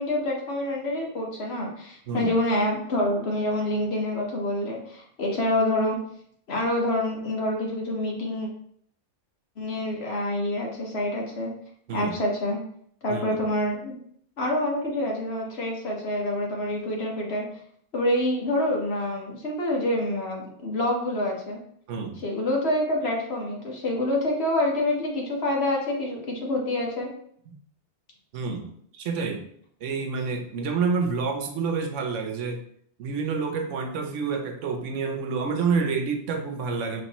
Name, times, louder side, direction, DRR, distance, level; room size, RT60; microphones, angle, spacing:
voice 1, 0.0-6.0 6.5-8.5 9.6-11.5 11.9-12.6 13.0-13.9 14.4-17.5 17.9-21.6 22.2-27.1, left 1 dB, 60° left, -1 dB, 1.3 m, -27 dB
voice 2, 13.1-13.4 21.9-22.2 27.5-27.6 28.3-29.4 29.8-32.6 33.0-37.0, right 5 dB, 90° right, 5 dB, 1.0 m, -28 dB
5.3 x 3.1 x 3.0 m, 0.65 s
omnidirectional pair, 1.2 m